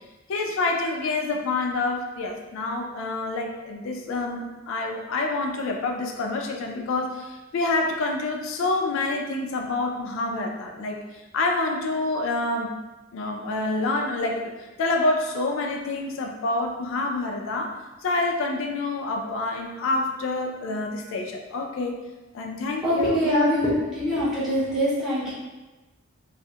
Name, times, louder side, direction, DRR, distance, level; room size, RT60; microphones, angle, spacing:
voice 1, 0.3-11.0 11.3-12.7 13.1-14.4 14.8-22.0 22.3-23.4, left 2 dB, 65° left, 2 dB, 0.3 m, -27 dB
voice 2, 22.8-25.3, equal, ahead, -11 dB, 0.6 m, -23 dB
2.3 x 2.0 x 2.7 m, 1.1 s
head